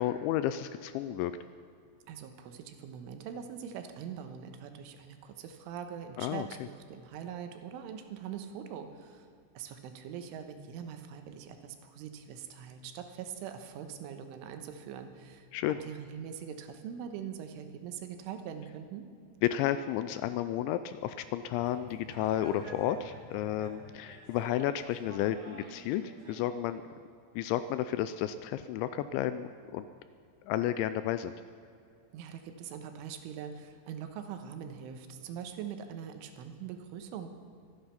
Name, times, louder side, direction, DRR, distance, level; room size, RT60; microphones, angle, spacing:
voice 1, 0.0-1.3 6.2-6.5 15.5-15.8 19.4-26.8 27.4-29.9 30.5-31.3, left 12 dB, 85° left, 12 dB, 2.7 m, -32 dB
voice 2, 2.1-9.3 9.6-15.5 15.8-19.1 32.1-37.3, right 8 dB, 85° right, 7 dB, 3.5 m, -43 dB
sound 1, 21.5-26.4, right 1 dB, 40° right, 4.2 m, -50 dB
24.5 x 9.8 x 5.7 m, 2.4 s
omnidirectional pair, 5.6 m